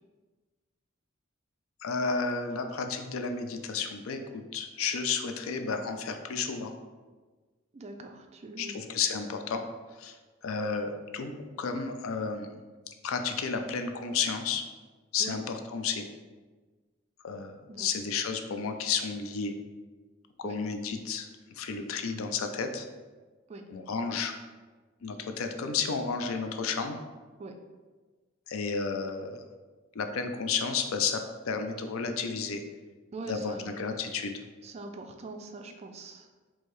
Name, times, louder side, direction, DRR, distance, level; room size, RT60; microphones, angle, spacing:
voice 1, 1.8-6.7 8.6-9.6 10.0-10.2 10.4-12.5 13.0-14.6 15.1-16.0 17.2-19.5 20.4-21.3 21.6-22.9 23.7-24.3 25.0-27.0 28.5-29.4 29.9-31.2 31.5-32.6 33.3-34.4, left 5 dB, 85° left, 6 dB, 0.4 m, -32 dB
voice 2, 7.7-8.9 15.2-15.4 17.7-17.9 20.4-20.6 23.5-23.6 27.4-27.6 33.1-33.7 34.6-36.3, right 2 dB, 30° right, 5 dB, 0.3 m, -42 dB
4.5 x 2.8 x 3.1 m, 1.4 s
head